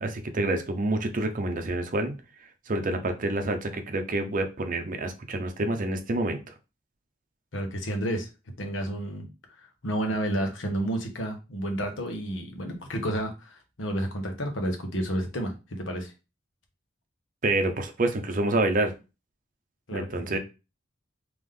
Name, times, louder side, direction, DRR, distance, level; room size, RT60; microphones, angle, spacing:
voice 1, 0.0-2.1 2.7-6.4 17.4-18.9 19.9-20.4, right 2 dB, 45° right, 6 dB, 0.7 m, -27 dB
voice 2, 7.5-8.3 8.6-9.2 9.8-16.1 19.9-20.3, right 1 dB, 80° left, 4 dB, 1.1 m, -31 dB
3.4 x 3.0 x 3.7 m, 0.29 s
head